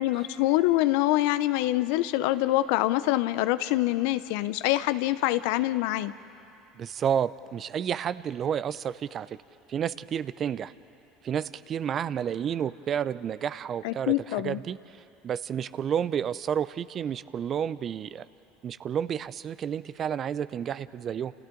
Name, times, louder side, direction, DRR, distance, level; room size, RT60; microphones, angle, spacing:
voice 1, 0.0-6.1 13.8-14.6, left 16 dB, 70° left, 14 dB, 0.6 m, -25 dB
voice 2, 6.8-9.4 9.7-10.7 11.2-14.8 15.2-18.2 18.6-21.3, right 8 dB, 45° right, 16 dB, 0.6 m, -30 dB
29.5 x 28.0 x 3.9 m, 2.8 s
hypercardioid pair, 75°, 0 cm